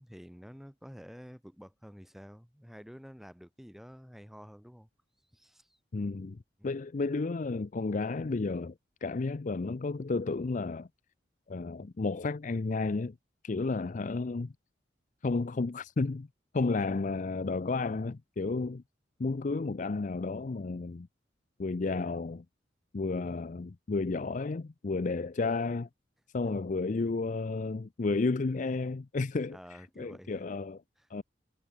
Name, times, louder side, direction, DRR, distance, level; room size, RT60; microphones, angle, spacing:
voice 1, 0.0-4.9 5.3-5.8 29.5-30.4 31.0-31.1, equal, ahead, 2.9 m, -50 dB
voice 2, 5.9-8.7 9.0-10.9 11.5-13.2 13.4-14.5 15.2-16.3 16.5-18.8 19.2-21.1 21.6-22.4 22.9-25.9 26.3-29.6 30.0-30.8 31.1-31.2, left 3 dB, 45° left, 0.5 m, -32 dB
head